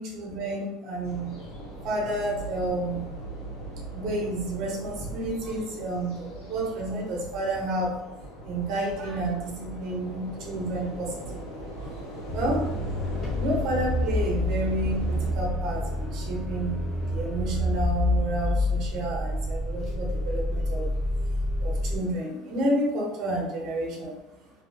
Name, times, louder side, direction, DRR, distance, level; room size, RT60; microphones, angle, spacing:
voice 1, 0.0-1.3 1.8-3.0 3.9-7.9 8.4-11.6 12.3-12.6 13.3-16.8 17.1-20.9 21.6-24.1, right 1 dB, 45° right, -2 dB, 0.8 m, -30 dB
sound 1, 1.0-15.3, right 1 dB, 80° left, 1.2 m, -39 dB
sound 2, 12.3-22.0, left 1 dB, 20° left, 0.8 m, -28 dB
2.6 x 2.4 x 2.6 m, 1.0 s
cardioid pair, 170°, 0 cm